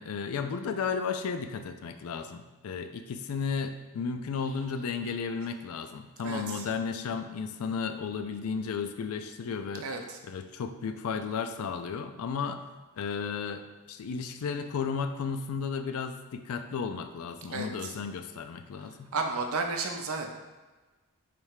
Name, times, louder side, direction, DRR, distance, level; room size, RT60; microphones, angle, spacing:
voice 1, 0.0-12.6 13.0-19.1, left 5 dB, 80° left, 8 dB, 0.4 m, -34 dB
voice 2, 6.2-6.6 9.8-10.2 17.5-17.7 19.1-20.3, right 3 dB, 75° right, 3 dB, 0.6 m, -32 dB
3.4 x 3.1 x 4.8 m, 1.2 s
head